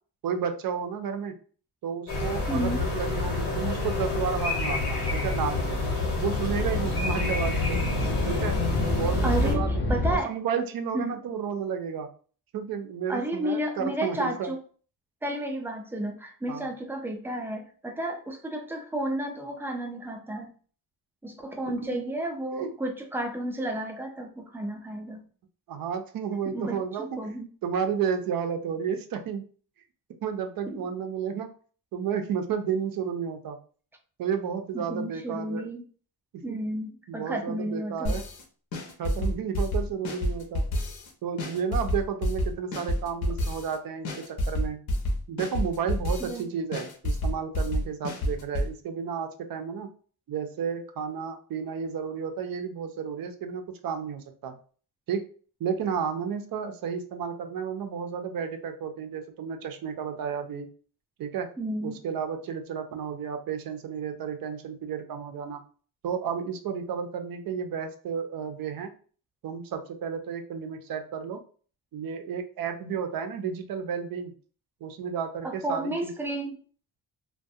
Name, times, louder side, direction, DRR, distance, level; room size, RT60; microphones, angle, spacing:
voice 1, 0.2-1.3 1.8-5.8 6.2-7.8 8.2-8.5 9.0-9.7 10.1-12.1 12.5-14.5 16.5-16.7 21.8-22.0 22.6-22.7 25.7-27.1 27.6-29.4 30.2-31.5 31.9-33.6 34.2-35.6 36.3-36.6 37.1-38.2 39.0-40.6 41.2-44.8 45.3-49.9 50.3-54.6 55.1-55.2 55.6-60.7 61.2-61.5 61.8-65.6 66.0-68.9 69.4-71.4 71.9-74.3 74.8-76.1, right 7 dB, 60° right, 7 dB, 0.5 m, -32 dB
sound 1, 2.1-9.5, left 3 dB, 85° left, 1.1 m, -28 dB
voice 2, 2.5-2.9 9.2-10.3 10.9-11.2 13.1-14.6 15.2-20.5 21.2-25.2 26.5-27.5 30.7-30.8 34.7-35.8 36.4-38.2 46.2-46.4 61.6-62.0 75.4-76.6, right 1 dB, 5° right, 2 dB, 0.3 m, -32 dB
sound 2, 4.1-10.2, left 1 dB, 30° left, 0.6 m, -30 dB
sound 3, 38.1-38.4 38.7-41.1 41.4-43.8 44.1-46.4 46.7-48.7, left 1 dB, 65° left, 0.8 m, -28 dB
2.3 x 2.2 x 2.6 m, 0.41 s
cardioid pair, 130°, 39 cm